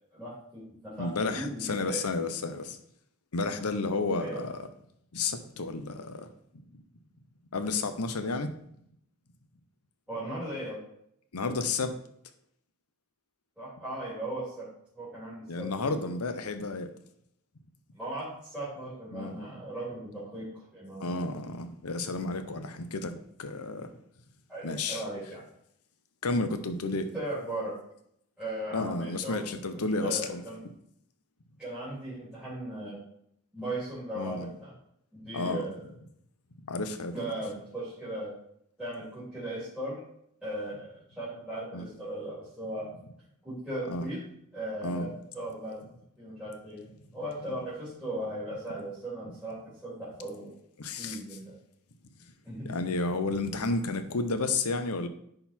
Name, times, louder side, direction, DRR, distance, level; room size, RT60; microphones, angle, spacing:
voice 1, 0.1-2.1 4.2-4.4 10.1-10.8 13.6-14.7 14.9-15.9 17.9-21.3 24.5-25.4 27.1-27.7 28.4-29.5 29.7-30.6 31.6-33.0 33.5-34.7 35.1-35.9 37.1-38.3 38.8-40.0 40.4-42.9 43.4-44.2 44.5-45.8 46.2-50.6 51.0-51.5 52.4-52.7, right 1 dB, 5° right, -11 dB, 3.0 m, -37 dB
voice 2, 1.0-2.8 3.3-4.7 5.1-6.3 7.5-8.5 11.3-12.0 15.5-16.9 19.1-19.4 21.0-23.9 24.6-25.0 26.2-27.1 28.7-30.4 34.1-34.5 35.3-35.6 36.6-37.1 41.7-41.9 43.9-44.1 44.8-45.1 50.8-51.2 52.7-55.1, left 3 dB, 85° left, 9 dB, 0.8 m, -31 dB
10.5 x 4.0 x 4.3 m, 0.72 s
head